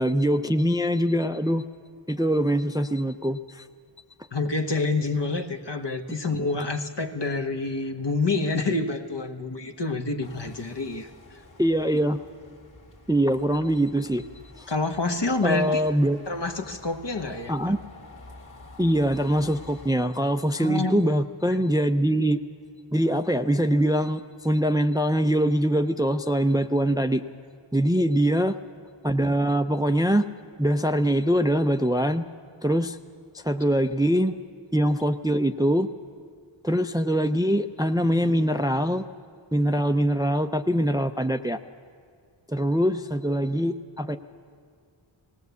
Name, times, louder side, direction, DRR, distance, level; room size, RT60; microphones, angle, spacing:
voice 1, 0.0-1.7 2.1-3.7 11.6-12.2 13.1-14.3 14.6-14.7 15.4-16.2 17.5-17.8 18.8-22.4 22.9-27.2 27.7-28.6 29.0-30.3 30.6-32.3 32.6-33.0 33.3-34.3 34.7-35.9 36.6-39.0 39.5-41.6 42.5-44.2, equal, 10° right, 9 dB, 0.5 m, -23 dB
voice 2, 4.3-11.1 14.7-15.8 16.3-17.7 20.6-21.0, left 3 dB, 55° left, 6 dB, 1.2 m, -27 dB
sound 1, 10.2-19.9, left 2 dB, 40° left, 1.9 m, -49 dB
19.0 x 17.0 x 8.2 m, 2.1 s
wide cardioid pair, 50°, 49 cm